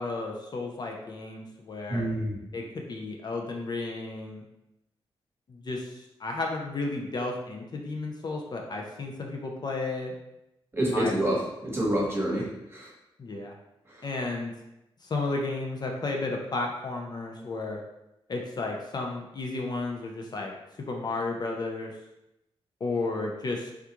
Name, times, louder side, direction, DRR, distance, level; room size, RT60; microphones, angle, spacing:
voice 1, 0.0-2.1 2.5-4.4 5.5-10.1 10.9-11.1 13.2-13.5 14.0-14.5 15.0-17.8 18.3-20.5 20.9-21.9 22.8-23.7, left 3 dB, 45° left, 1 dB, 0.5 m, -33 dB
voice 2, 1.9-2.4 10.7-11.4 11.6-12.5 12.7-12.9, right 1 dB, 25° right, -4 dB, 1.1 m, -27 dB
3.5 x 2.3 x 2.9 m, 0.89 s
cardioid pair, 85°, 10 cm